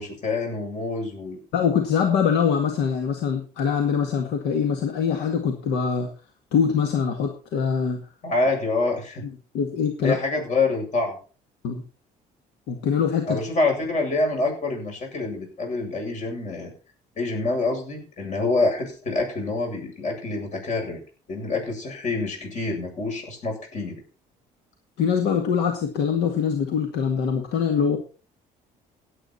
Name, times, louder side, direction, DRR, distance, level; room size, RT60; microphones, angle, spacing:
voice 1, 0.0-1.4 8.2-9.3 10.0-11.2 13.3-16.7 17.2-21.0 21.3-24.0, left 3 dB, 45° left, 1 dB, 7.7 m, -26 dB
voice 2, 1.5-6.1 6.5-8.0 9.2-10.2 11.6-11.8 12.7-13.4 25.0-28.0, left 7 dB, 85° left, 4 dB, 1.9 m, -23 dB
16.5 x 8.9 x 4.3 m, 0.37 s
cardioid pair, 110°, 17 cm